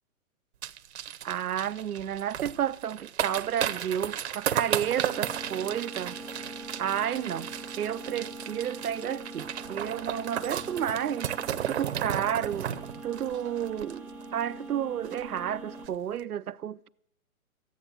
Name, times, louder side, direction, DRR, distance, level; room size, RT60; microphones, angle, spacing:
sound 1, 0.6-14.4 14.7-14.8 15.0-15.4 15.7-15.9, right 10 dB, 50° right, 0.8 m, -34 dB
voice 1, 1.2-6.2 6.8-7.5 7.8-11.3 11.7-12.7 13.0-16.9, right 9 dB, 90° right, 0.6 m, -31 dB
sound 2, 5.1-15.9, right 1 dB, 5° right, 0.7 m, -43 dB
14.0 x 9.4 x 8.9 m
hypercardioid pair, 140°, 43 cm